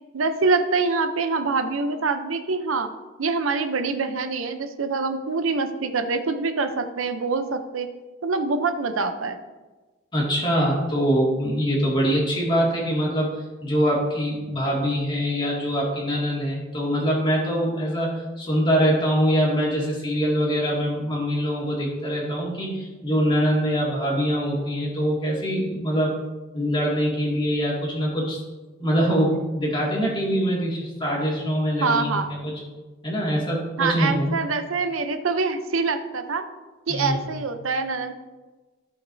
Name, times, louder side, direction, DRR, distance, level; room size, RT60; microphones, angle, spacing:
voice 1, 0.1-2.9 3.2-7.9 8.2-9.4 31.8-32.3 33.8-36.4 36.9-38.1, right 4 dB, 85° right, 8 dB, 0.7 m, -25 dB
voice 2, 10.1-13.3 13.6-26.1 26.5-28.4 28.8-32.5 33.0-34.3 36.9-37.3, equal, 25° left, -3 dB, 2.2 m, -23 dB
14.5 x 5.9 x 2.7 m, 1.2 s
head